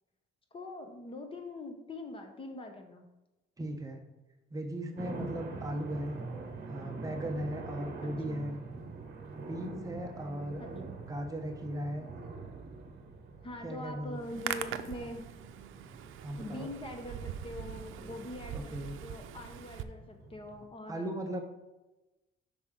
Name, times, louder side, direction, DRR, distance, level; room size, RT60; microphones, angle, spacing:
voice 1, 0.5-3.1 8.0-8.5 10.6-10.8 13.4-15.3 16.4-21.1, left 1 dB, 25° left, 4 dB, 0.8 m, -43 dB
voice 2, 3.6-4.0 4.5-6.2 6.7-8.6 9.4-10.6 11.0-12.1 13.6-14.2 16.2-16.7 18.5-19.0 20.9-21.4, right 1 dB, 15° right, 3 dB, 0.8 m, -37 dB
sound 1, 5.0-20.6, right 3 dB, 50° right, 1.2 m, -45 dB
Hands, 14.2-19.8, right 10 dB, 75° right, 0.5 m, -42 dB
8.4 x 6.0 x 3.7 m, 1.0 s
cardioid pair, 165°, 20 cm